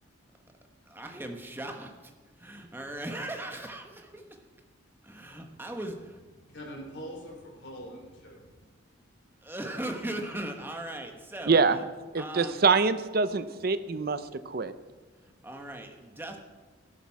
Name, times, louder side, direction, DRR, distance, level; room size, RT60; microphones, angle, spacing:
voice 1, 0.9-2.1 2.4-4.2 5.0-6.2 9.4-11.9 12.2-12.6 15.2-16.4, right 1 dB, 10° right, 3 dB, 1.2 m, -38 dB
voice 2, 6.4-8.6, equal, 60° left, 0 dB, 3.6 m, -44 dB
voice 3, 11.5-11.8 12.1-14.2 14.5-14.7, right 4 dB, 50° right, 13 dB, 0.6 m, -24 dB
13.5 x 11.5 x 4.8 m, 1.3 s
head